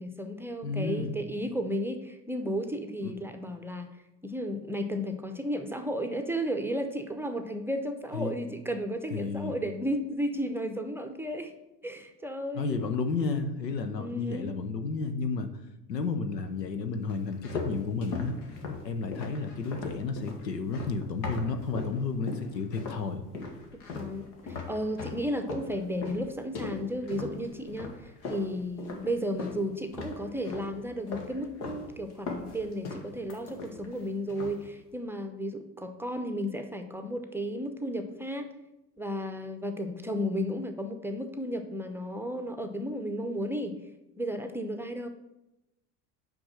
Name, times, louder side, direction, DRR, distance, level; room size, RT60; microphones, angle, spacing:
voice 1, 0.0-3.9 4.2-11.5 11.8-12.8 14.0-14.6 23.9-24.3 24.7-38.5 39.0-43.8 44.2-45.1, equal, 5° right, 6 dB, 0.7 m, -33 dB
voice 2, 0.6-1.1 3.0-3.1 8.1-8.3 9.1-9.5 12.5-15.5 15.9-18.3 18.8-23.2, left 4 dB, 90° left, 8 dB, 0.8 m, -32 dB
sound 1, 17.1-22.0 22.3-23.0 23.3-29.6 29.9-30.7 31.1-31.8 32.1-34.0 34.3-34.7, left 4 dB, 70° left, 1.5 m, -39 dB
6.1 x 5.2 x 6.2 m, 0.95 s
hypercardioid pair, 70°, 48 cm